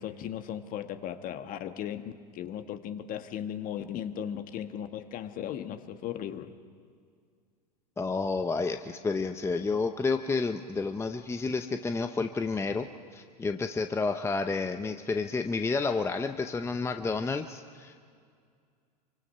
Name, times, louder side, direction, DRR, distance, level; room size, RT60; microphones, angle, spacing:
voice 1, 0.0-6.5, left 10 dB, 40° left, 8 dB, 1.4 m, -37 dB
voice 2, 8.0-17.9, left 4 dB, 10° left, 7 dB, 0.8 m, -30 dB
26.0 x 24.5 x 5.6 m, 2.2 s
hypercardioid pair, 100°, 21 cm